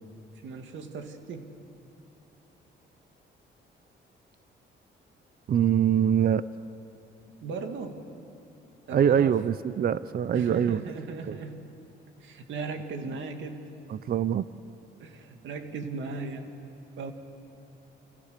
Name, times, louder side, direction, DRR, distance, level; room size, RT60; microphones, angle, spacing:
voice 1, 0.4-1.5 7.4-8.0 8.9-9.4 10.3-11.7 12.2-13.8 15.0-16.5 17.0-17.1, right 4 dB, 75° right, 5 dB, 2.5 m, -37 dB
voice 2, 5.5-6.4 8.9-10.8 11.3-11.4 13.9-14.5, right 9 dB, 50° right, 15 dB, 0.6 m, -24 dB
29.0 x 28.5 x 6.7 m, 2.8 s
cardioid pair, 90°, 20 cm